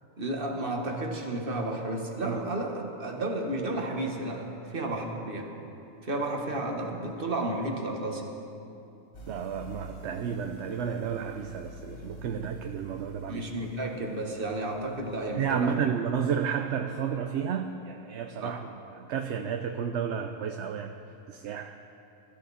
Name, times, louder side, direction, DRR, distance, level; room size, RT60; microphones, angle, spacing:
voice 1, 0.2-5.5 6.0-8.3 13.3-15.8 18.4-18.6, right 2 dB, 45° right, 2 dB, 1.7 m, -32 dB
sound 1, 9.1-15.5, left 3 dB, 55° left, 1.8 m, -48 dB
voice 2, 9.3-13.5 15.4-21.0 21.3-21.8, right 7 dB, 65° right, 6 dB, 0.9 m, -32 dB
23.0 x 14.0 x 4.2 m, 2.8 s
omnidirectional pair, 1.4 m